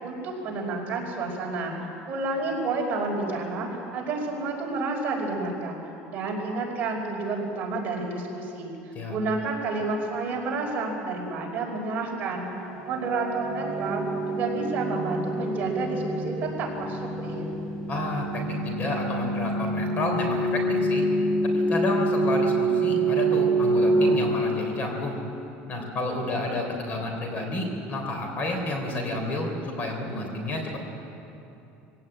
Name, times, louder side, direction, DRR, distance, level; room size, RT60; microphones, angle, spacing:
voice 1, 0.0-1.7 2.1-5.8 6.1-12.5 12.8-17.5, right 3 dB, 35° right, -1 dB, 5.1 m, -30 dB
sound 1, 12.7-25.4, right 2 dB, 15° left, 7.2 m, -26 dB
voice 2, 17.9-21.0 21.5-25.2 25.7-30.8, left 2 dB, 35° left, 3 dB, 3.6 m, -30 dB
23.0 x 17.0 x 8.9 m, 2.9 s
cardioid pair, 155°, 5 cm